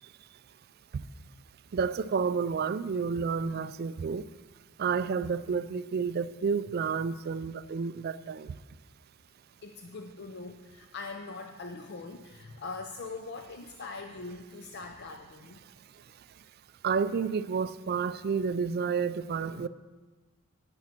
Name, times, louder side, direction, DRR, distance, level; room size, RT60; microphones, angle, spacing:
voice 1, 1.7-4.2 4.8-8.5 16.8-19.7, right 5 dB, 45° right, 15 dB, 0.3 m, -30 dB
voice 2, 9.6-15.6, left 3 dB, 50° left, 5 dB, 0.5 m, -42 dB
12.0 x 9.8 x 4.4 m, 1.3 s
head